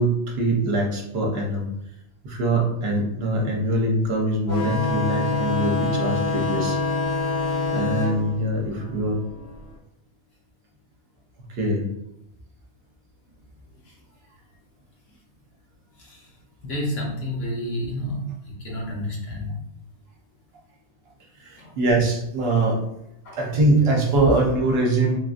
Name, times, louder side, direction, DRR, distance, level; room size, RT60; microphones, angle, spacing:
voice 1, 0.0-1.7 2.2-6.8 7.7-9.2 11.6-11.8 21.4-22.8 23.3-25.2, right 2 dB, 60° right, 0 dB, 0.9 m, -23 dB
sound 1, 4.5-9.6, left 3 dB, 65° left, 0.9 m, -26 dB
voice 2, 16.6-18.2 18.6-19.5 21.6-21.7 23.2-23.4, left 1 dB, 90° left, -3 dB, 1.3 m, -29 dB
3.7 x 2.5 x 2.4 m, 0.82 s
omnidirectional pair, 1.2 m